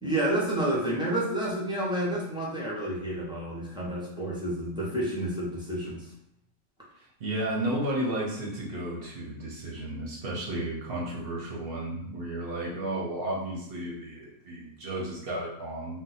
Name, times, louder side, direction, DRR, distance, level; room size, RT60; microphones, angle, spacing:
voice 1, 0.0-6.1, right 1 dB, 5° right, -6 dB, 0.5 m, -30 dB
voice 2, 7.2-16.0, right 1 dB, 55° right, -3 dB, 0.8 m, -33 dB
2.6 x 2.2 x 4.0 m, 0.76 s
omnidirectional pair, 1.4 m